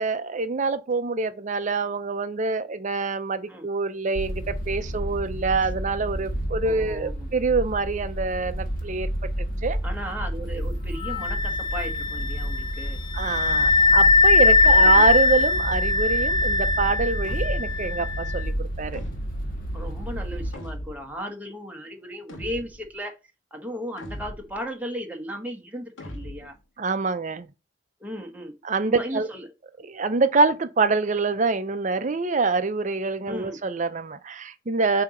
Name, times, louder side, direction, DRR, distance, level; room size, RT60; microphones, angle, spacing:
voice 1, 0.0-9.1 9.6-9.8 13.1-19.0 26.8-27.5 28.6-29.3 29.8-35.0, right 4 dB, 40° right, 0.6 m, -25 dB
sound 1, 4.1-20.5, equal, 50° left, 1.5 m, -30 dB
voice 2, 6.6-7.3 9.8-13.0 14.6-15.1 19.7-23.2 23.5-26.5 28.0-28.5 28.9-29.5 33.2-33.6, equal, 10° right, 1.1 m, -36 dB
Wind instrument woodwind instrument, 11.0-18.4, left 3 dB, 25° left, 0.4 m, -21 dB
sound 2, 17.2-17.9 18.9-19.6 20.5-21.2 22.3-22.9 24.0-24.6 26.0-26.6, equal, 85° left, 1.1 m, -39 dB
6.9 x 2.9 x 5.0 m
head